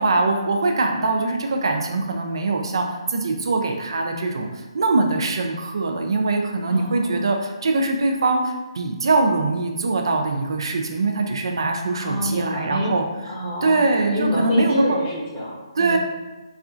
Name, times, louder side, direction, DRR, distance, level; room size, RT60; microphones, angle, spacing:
voice 1, 0.0-13.0 13.6-15.0 15.7-16.0, right 3 dB, 55° right, 3 dB, 0.4 m, -22 dB
voice 2, 6.7-7.2 12.0-12.9 13.3-13.8 14.1-16.0, equal, 15° left, -6 dB, 0.7 m, -27 dB
4.2 x 2.4 x 2.4 m, 1.1 s
hypercardioid pair, 175°, 3 cm